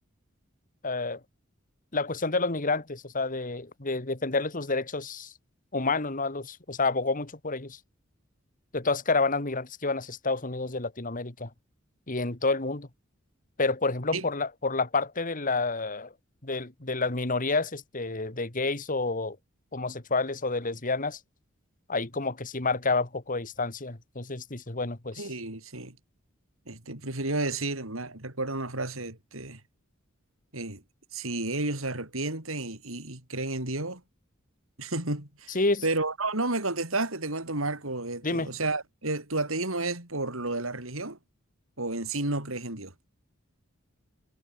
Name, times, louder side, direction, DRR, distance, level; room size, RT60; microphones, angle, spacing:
voice 1, 0.8-1.2 1.9-5.3 5.7-7.8 8.7-11.5 12.1-12.9 13.6-16.1 16.4-19.4 19.7-21.2 21.9-25.3 35.5-35.8 38.2-38.5, left 3 dB, 40° left, 2.2 m, -29 dB
voice 2, 25.2-26.0 26.7-29.6 30.5-30.8 31.1-34.0 34.8-35.6 35.8-41.2 41.8-42.9, right 2 dB, 85° right, 6.5 m, -31 dB
head